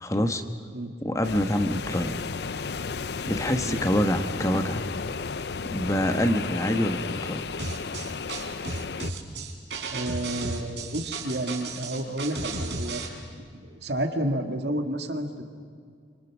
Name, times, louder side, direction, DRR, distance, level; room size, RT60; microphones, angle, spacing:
voice 1, 0.0-0.4 1.0-2.2 3.3-4.9 5.7-7.4, equal, 20° left, 7 dB, 1.3 m, -26 dB
sound 1, 1.2-9.1, left 5 dB, 70° left, 0.6 m, -33 dB
sound 2, 7.6-13.1, right 3 dB, 90° right, 4.2 m, -34 dB
voice 2, 9.9-13.0 13.5-15.4, right 1 dB, 75° right, 5 dB, 2.1 m, -30 dB
27.0 x 26.5 x 6.3 m, 2.2 s
head